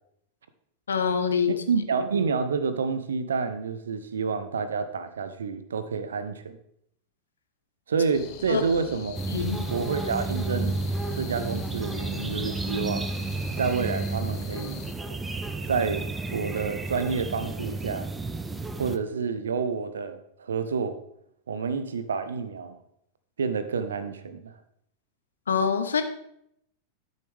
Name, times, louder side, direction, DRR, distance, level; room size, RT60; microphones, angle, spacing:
voice 1, 0.9-1.6 8.5-8.6 9.3-9.7 25.5-26.0, left 6 dB, 70° left, 8 dB, 0.9 m, -25 dB
voice 2, 1.5-6.6 7.9-9.2 9.7-10.8 11.2-13.1 13.6-14.8 15.7-16.0 16.3-18.1 18.8-21.0 21.5-22.8 23.4-24.5, right 5 dB, 65° right, 11 dB, 0.8 m, -29 dB
sound 1, 8.1-14.9, left 9 dB, 45° left, 0.9 m, -42 dB
sound 2, 9.1-19.0, right 3 dB, 10° right, 0.6 m, -32 dB
12.0 x 6.6 x 3.4 m, 0.73 s
figure-of-eight pair, 90°, 0 cm